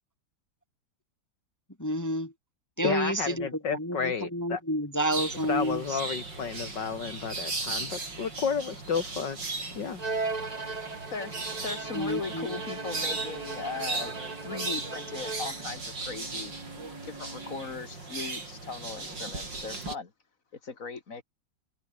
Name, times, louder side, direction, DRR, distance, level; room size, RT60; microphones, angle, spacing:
voice 1, 1.8-2.3 2.8-6.0 11.9-12.5, equal, 10° left, 2.0 m, -30 dB
voice 2, 2.8-4.6 5.5-9.4 9.7-10.0, left 6 dB, 75° left, 2.8 m, -31 dB
sound 1, 5.1-20.0, right 3 dB, 90° right, 5.8 m, -37 dB
Bowed string instrument, 10.0-15.7, right 3 dB, 25° right, 1.4 m, -37 dB
voice 3, 11.1-14.1 14.4-16.5 17.0-20.1 20.7-21.2, left 4 dB, 50° left, 2.4 m, -38 dB
Bowed string instrument 2, 11.7-17.7, right 2 dB, 60° right, 6.5 m, -49 dB
open air
omnidirectional pair, 1.9 m